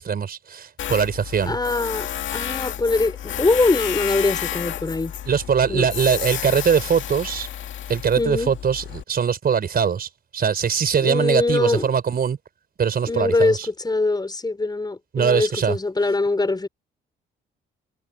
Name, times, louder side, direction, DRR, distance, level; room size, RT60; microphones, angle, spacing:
voice 1, 0.0-1.6 5.3-7.5 7.9-12.4 12.8-13.7 15.1-15.8, right 7 dB, 50° right, 4.9 m, -22 dB
Tools, 0.8-9.0, left 11 dB, 75° left, 2.2 m, -31 dB
voice 2, 1.5-5.1 5.7-5.9 8.2-8.6 11.0-11.9 13.1-16.7, left 3 dB, 20° left, 5.8 m, -22 dB
cardioid pair, 90°, 20 cm